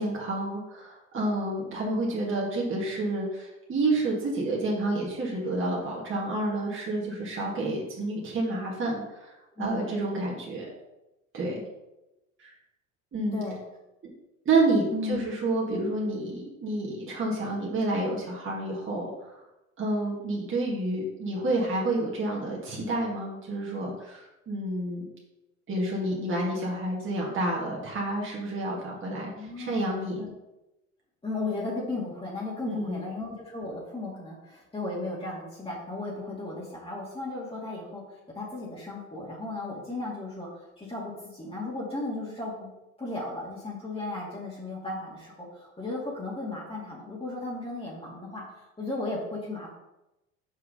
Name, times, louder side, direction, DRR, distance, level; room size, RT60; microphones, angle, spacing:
voice 1, 0.0-10.7 11.3-11.6 12.4-12.5 13.1-13.4 14.0-14.1 14.5-19.4 19.8-25.1 25.7-30.2 32.6-33.0, right 2 dB, 30° right, -3 dB, 2.2 m, -29 dB
voice 2, 9.6-9.9 13.3-13.6 14.9-15.2 29.4-30.3 31.2-42.7 43.0-49.7, left 2 dB, 15° left, -6 dB, 2.3 m, -35 dB
6.3 x 4.6 x 5.0 m, 0.96 s
hypercardioid pair, 70°, 41 cm